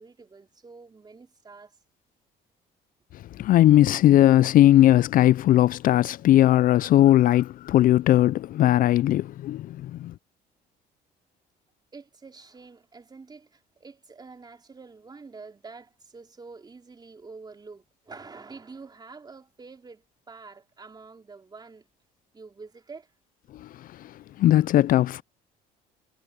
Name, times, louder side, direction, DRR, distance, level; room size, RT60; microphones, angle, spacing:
voice 1, 0.0-1.8 11.9-21.9 22.3-23.1, right 4 dB, 25° right, 4.0 m, -47 dB
voice 2, 3.4-10.1 23.6-23.7 24.0-25.2, left 13 dB, 55° left, 0.4 m, -19 dB
cardioid pair, 110°, 17 cm